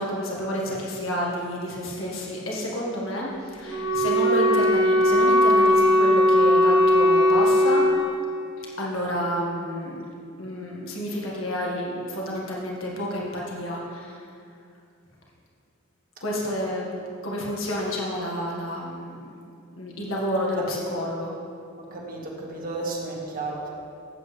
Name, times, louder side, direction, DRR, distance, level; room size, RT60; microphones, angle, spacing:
voice 1, 0.0-7.8 8.8-10.0 10.4-14.2 16.2-16.9 17.2-19.2 19.8-21.3, equal, 80° left, -3 dB, 1.7 m, -29 dB
Wind instrument woodwind instrument, 3.6-8.0, left 1 dB, 20° right, 1.4 m, -19 dB
voice 2, 20.3-20.8 21.9-23.7, right 3 dB, 45° right, -2 dB, 1.7 m, -33 dB
14.5 x 8.0 x 3.4 m, 2.4 s
head